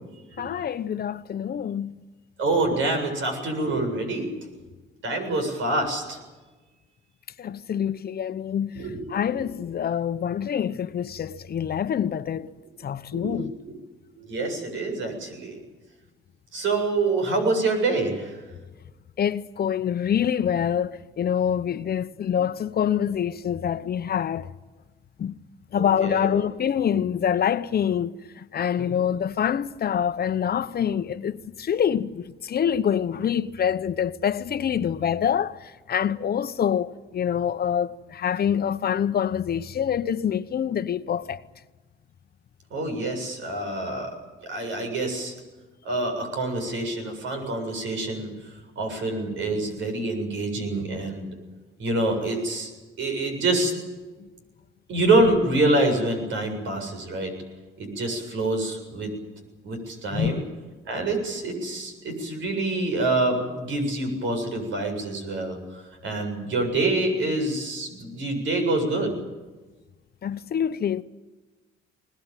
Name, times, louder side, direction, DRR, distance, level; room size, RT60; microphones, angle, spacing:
voice 1, 0.4-2.0 7.4-8.8 9.1-12.5 12.8-13.5 19.2-24.5 25.2-25.3 25.7-41.4 60.1-60.4 70.2-71.0, left 8 dB, 50° left, 1.0 m, -26 dB
voice 2, 2.4-4.5 5.0-6.2 8.7-9.3 13.1-13.7 14.2-15.6 16.5-18.4 25.8-26.4 28.8-28.9 42.7-44.2 44.4-45.3 45.8-48.3 48.8-51.3 51.8-52.7 53.0-53.7 54.9-57.3 57.8-59.1 59.6-60.4 60.9-69.2, right 2 dB, 75° right, 7.8 m, -26 dB
21.0 x 20.0 x 9.2 m
cardioid pair, 90°, 20 cm